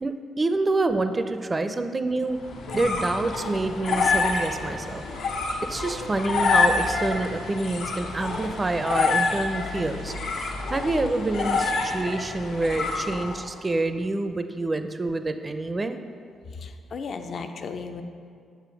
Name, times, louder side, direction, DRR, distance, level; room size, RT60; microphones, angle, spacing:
voice 1, 0.0-2.4 2.7-5.0 5.7-16.0, right 2 dB, 25° right, 9 dB, 0.4 m, -27 dB
sound 1, 2.3-13.5, left 4 dB, 80° left, 0.9 m, -27 dB
voice 2, 16.6-18.0, left 5 dB, 50° left, 7 dB, 0.5 m, -35 dB
7.0 x 4.4 x 5.7 m, 2.2 s
cardioid pair, 90°, 0 cm